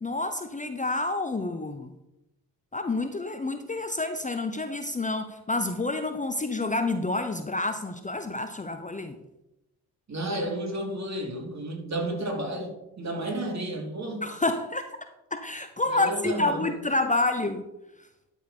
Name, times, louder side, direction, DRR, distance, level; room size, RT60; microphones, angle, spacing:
voice 1, 0.0-1.9 2.7-9.2 14.2-15.0 15.3-17.6, left 2 dB, 20° left, 8 dB, 0.8 m, -28 dB
voice 2, 10.1-14.3 15.9-16.7, right 1 dB, 40° right, 1 dB, 3.2 m, -32 dB
12.0 x 4.6 x 5.2 m, 0.91 s
hypercardioid pair, 40°, 42 cm